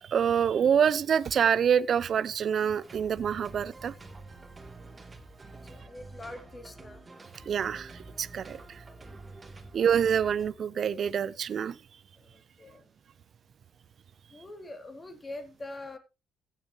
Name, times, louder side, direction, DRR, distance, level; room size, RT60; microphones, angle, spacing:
voice 1, 0.0-3.9 7.5-8.8 9.7-11.8, right 8 dB, 55° right, 0.7 m, -26 dB
sound 1, 2.8-10.5, right 2 dB, 25° right, 2.9 m, -48 dB
voice 2, 5.6-7.0 12.2-12.9 14.3-16.0, left 2 dB, 25° left, 2.9 m, -44 dB
16.0 x 8.6 x 3.1 m
cardioid pair, 90°, 0 cm